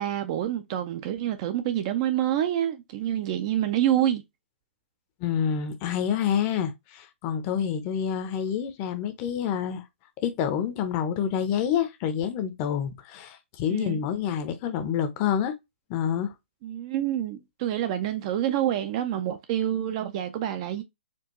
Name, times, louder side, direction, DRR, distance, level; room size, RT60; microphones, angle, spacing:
voice 1, 0.0-4.2 13.7-14.0 16.6-20.8, right 11 dB, 30° right, 0.4 m, -27 dB
voice 2, 5.2-9.8 10.2-15.5 15.9-16.3, left 8 dB, 25° left, 0.6 m, -27 dB
4.4 x 2.3 x 2.9 m
hypercardioid pair, 155°, 7 cm